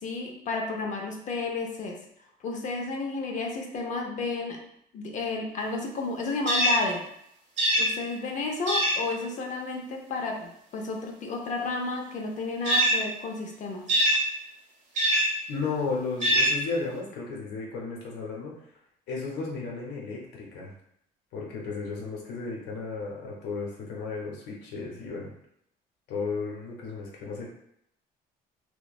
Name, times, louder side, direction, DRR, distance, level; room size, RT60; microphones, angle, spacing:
voice 1, 0.0-2.0 2.4-4.6 4.9-7.0 7.8-13.8, left 3 dB, 50° left, 1 dB, 0.6 m, -32 dB
sound 1, 6.5-6.8 7.6-7.9 8.7-9.0 12.6-13.0 13.9-14.2 15.0-15.3 16.2-16.6, equal, 45° right, 0.9 m, -22 dB
voice 2, 15.5-18.5 19.1-20.7 21.3-25.3 26.1-27.4, left 4 dB, 85° left, -2 dB, 0.8 m, -34 dB
2.9 x 2.1 x 2.3 m, 0.73 s
cardioid pair, 110°, 17 cm